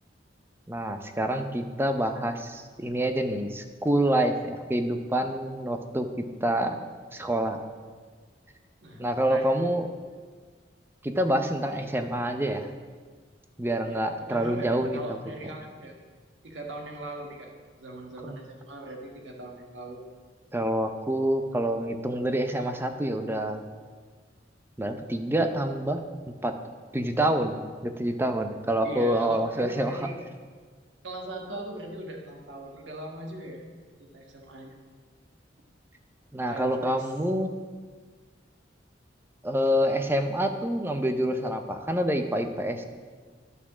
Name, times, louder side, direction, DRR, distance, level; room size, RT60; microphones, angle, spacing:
voice 1, 0.7-6.1 6.4-6.8 7.1-7.6 9.0-9.9 11.0-12.7 13.6-15.0 18.2-18.4 20.5-23.6 24.8-26.0 26.4-26.5 26.9-30.1 36.3-37.5 39.4-42.9, right 1 dB, 15° right, 6 dB, 0.7 m, -27 dB
voice 2, 8.8-9.5 13.8-15.9 16.4-17.5 17.8-20.0 28.8-30.1 31.0-33.6 34.1-34.8 36.5-37.0, right 1 dB, 85° right, 1 dB, 1.6 m, -40 dB
11.0 x 6.1 x 6.1 m, 1.5 s
head